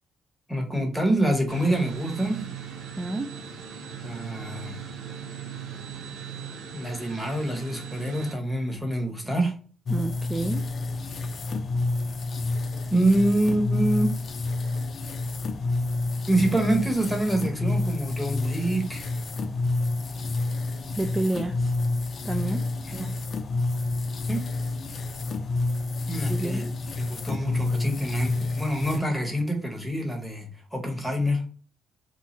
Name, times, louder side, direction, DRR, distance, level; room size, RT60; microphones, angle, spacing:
voice 1, 0.5-2.5 4.0-4.8 6.7-9.5 12.9-14.1 16.3-19.2 22.8-23.1 24.3-24.4 26.1-31.4, right 1 dB, ahead, 2 dB, 1.0 m, -26 dB
sound 1, 1.5-8.3, right 7 dB, 85° right, 0.6 m, -39 dB
voice 2, 3.0-3.3 9.9-10.6 21.0-21.7 22.2-22.6 26.3-26.6, right 2 dB, 20° right, 5 dB, 0.3 m, -29 dB
sound 2, 9.9-29.0, left 2 dB, 55° left, 0.5 m, -29 dB
2.9 x 2.4 x 3.8 m, 0.42 s
cardioid pair, 90°, 0 cm